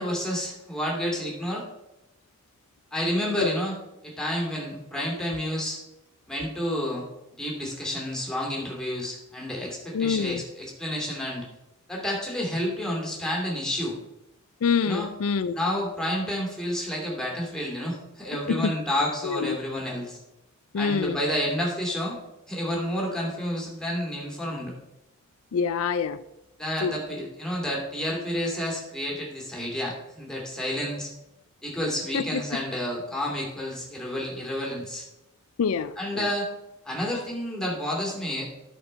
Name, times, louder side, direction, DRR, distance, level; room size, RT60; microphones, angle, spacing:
voice 1, 0.0-1.6 2.9-3.8 4.0-5.8 6.3-7.0 7.4-11.4 11.9-13.9 14.8-15.1 15.5-20.2 20.8-22.2 22.5-24.7 26.6-31.1 31.6-35.1 36.0-36.5 36.8-38.4, equal, 5° left, 2.6 m, -30 dB
voice 2, 9.9-10.4 14.6-15.6 18.3-18.7 19.2-19.6 20.7-21.2 25.5-26.2 26.8-26.9 32.1-32.6 35.6-36.3, left 6 dB, 80° left, 0.4 m, -26 dB
11.0 x 4.8 x 5.4 m
head